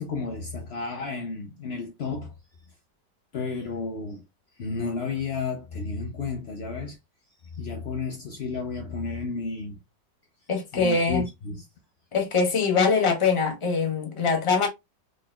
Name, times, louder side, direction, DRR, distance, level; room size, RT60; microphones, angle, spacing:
voice 1, 0.0-2.3 3.3-4.2 4.6-7.0 7.4-9.8 10.7-11.6, left 4 dB, 80° left, 0.5 m, -32 dB
voice 2, 10.5-11.3 12.1-14.7, left 5 dB, 30° left, 0.6 m, -23 dB
3.9 x 3.8 x 2.3 m
omnidirectional pair, 2.0 m